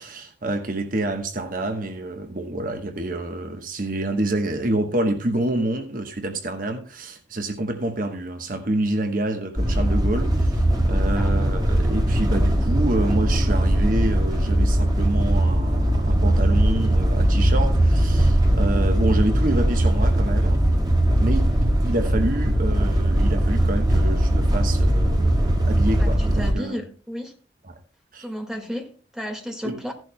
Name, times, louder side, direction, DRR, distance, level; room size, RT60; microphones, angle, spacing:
voice 1, 0.0-20.6 21.2-21.4 21.8-26.8 27.6-27.8 28.1-28.3 29.6-29.8, right 1 dB, 50° right, 1.1 m, -27 dB
sound 1, 9.5-26.5, right 1 dB, 25° right, 1.8 m, -20 dB
voice 2, 26.0-27.3 28.2-29.9, equal, 5° right, 1.8 m, -33 dB
16.0 x 11.0 x 2.2 m
head